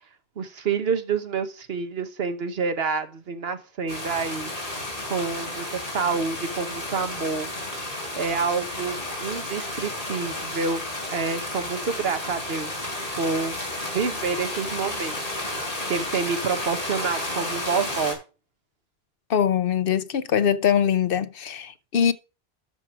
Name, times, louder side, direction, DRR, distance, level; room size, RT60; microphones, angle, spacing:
voice 1, 0.4-4.5 5.0-7.5 8.2-12.9 13.1-13.6 13.9-15.5 15.9-18.2, right 5 dB, 70° right, 1.3 m, -28 dB
sound 1, 3.9-18.1, left 1 dB, 35° left, 4.8 m, -32 dB
voice 2, 19.3-22.1, left 8 dB, 65° left, 0.8 m, -22 dB
12.0 x 4.8 x 5.9 m
omnidirectional pair, 1.1 m